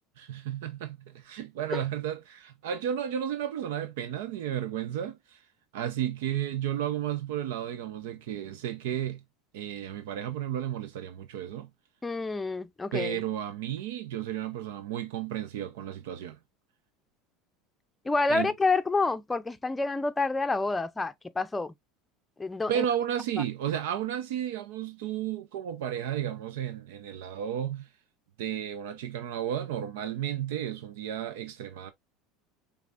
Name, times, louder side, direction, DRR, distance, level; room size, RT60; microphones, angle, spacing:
voice 1, 0.2-5.4 5.7-9.2 9.5-11.7 12.9-16.4 18.3-18.5 22.7-27.9 28.4-31.9, right 10 dB, 80° right, 0.6 m, -33 dB
voice 2, 12.0-13.2 18.0-21.7 22.4-22.8, left 3 dB, 10° left, 0.6 m, -28 dB
5.2 x 3.4 x 2.5 m
supercardioid pair, 110°, 0 cm